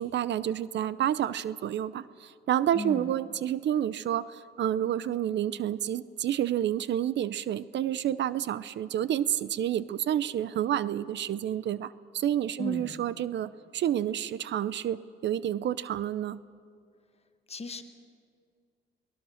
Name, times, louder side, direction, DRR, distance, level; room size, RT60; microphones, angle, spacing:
voice 1, 0.0-16.4, right 11 dB, 65° right, 17 dB, 0.6 m, -29 dB
voice 2, 2.7-3.1 12.6-13.0 17.5-17.8, left 3 dB, 30° left, 8 dB, 1.6 m, -36 dB
23.0 x 19.0 x 6.5 m, 2.2 s
cardioid pair, 90°, 20 cm